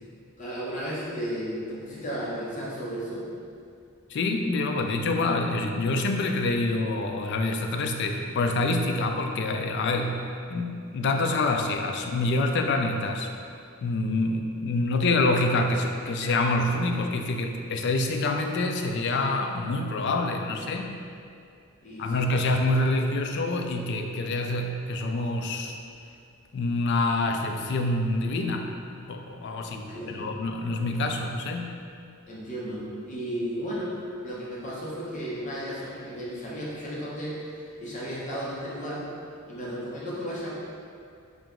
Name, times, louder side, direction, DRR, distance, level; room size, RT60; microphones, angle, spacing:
voice 1, 0.4-3.2 21.8-22.2 29.9-30.3 32.3-33.9 34.2-39.0 39.5-40.5, equal, 35° left, -7 dB, 0.8 m, -34 dB
voice 2, 4.1-13.3 13.8-20.9 22.0-25.8 26.5-28.7 29.1-31.7, left 2 dB, 50° left, 4 dB, 0.3 m, -26 dB
3.8 x 2.9 x 3.6 m, 2.4 s
head